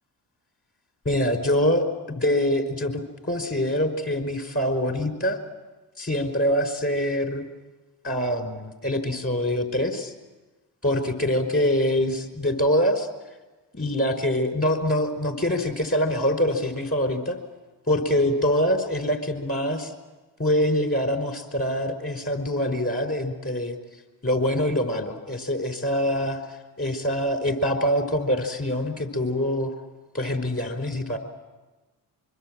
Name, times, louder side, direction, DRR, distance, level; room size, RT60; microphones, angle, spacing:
voice 1, 1.0-5.4 6.0-7.5 8.0-10.1 10.8-13.1 13.7-17.4 17.9-19.9 20.4-23.8 24.2-29.7 30.1-31.2, left 1 dB, 30° left, 6 dB, 5.0 m, -24 dB
24.5 x 23.5 x 7.7 m, 1.2 s
supercardioid pair, 55°, 45 cm